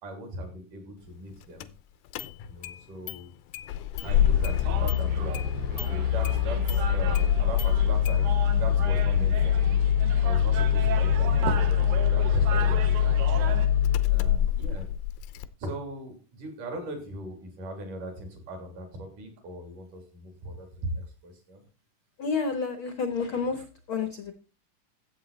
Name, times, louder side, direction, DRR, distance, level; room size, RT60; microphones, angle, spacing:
voice 1, 0.0-1.7 2.4-3.3 4.0-9.8 10.2-13.3 14.1-14.9 15.6-21.6, right 1 dB, 65° right, 4 dB, 4.7 m, -39 dB
Engine starting, 1.6-1.7 2.1-2.8 3.1-3.2 3.5-15.5, left 9 dB, 85° left, 2.5 m, -24 dB
sound 1, 4.0-13.7, right 7 dB, 80° right, 3.0 m, -36 dB
voice 2, 22.2-24.3, left 5 dB, 70° left, 9 dB, 1.2 m, -30 dB
14.0 x 8.0 x 4.2 m, 0.34 s
omnidirectional pair, 4.0 m